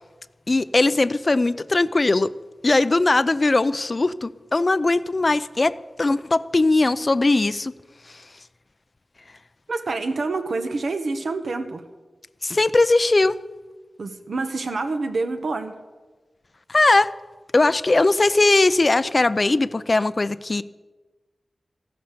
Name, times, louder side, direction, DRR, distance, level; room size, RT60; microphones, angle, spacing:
voice 1, 0.5-2.3 2.6-7.7 8.1-8.2 12.4-13.4 16.7-17.1 17.5-20.6, left 2 dB, 40° left, 15 dB, 0.5 m, -19 dB
voice 2, 9.7-11.8 14.0-15.7, right 3 dB, 75° right, 7 dB, 1.4 m, -27 dB
15.0 x 11.0 x 6.8 m, 1.2 s
wide cardioid pair, 85°, 0 cm